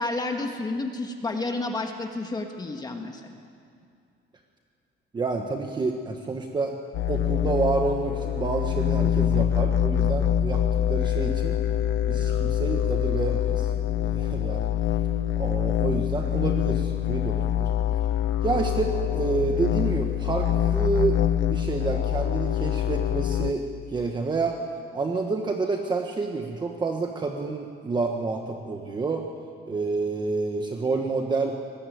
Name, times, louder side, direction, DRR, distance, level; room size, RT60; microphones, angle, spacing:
voice 1, 0.0-3.3, left 2 dB, 20° left, 4 dB, 1.6 m, -30 dB
voice 2, 5.1-6.7 7.1-10.6 10.9-11.6 12.1-13.7 14.0-14.7 15.4-17.7 18.4-21.2 21.5-24.6 24.9-29.3 29.7-31.6, right 3 dB, 20° right, 3 dB, 1.4 m, -28 dB
sound 1, 6.9-23.5, left 10 dB, 75° left, 0.9 m, -25 dB
25.0 x 20.0 x 9.4 m, 2.3 s
cardioid pair, 175°, 20 cm